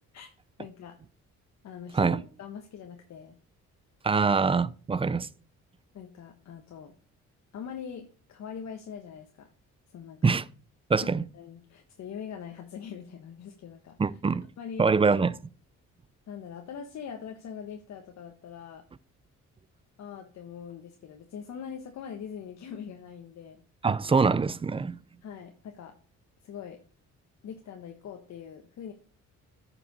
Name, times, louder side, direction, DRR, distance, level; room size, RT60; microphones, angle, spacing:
voice 1, 0.6-1.0 1.6-3.4 5.9-6.9 7.5-9.5 9.9-10.2 10.9-14.0 14.6-14.9 16.3-18.8 20.0-23.6 25.2-25.9 26.4-26.8 27.4-28.9, left 7 dB, 65° left, 1.2 m, -42 dB
voice 2, 4.0-5.3 10.2-10.5 10.9-11.2 14.0-14.5 14.8-15.4 23.8-25.0, right 4 dB, 20° right, 0.4 m, -24 dB
9.3 x 6.0 x 4.1 m
cardioid pair, 90°, 30 cm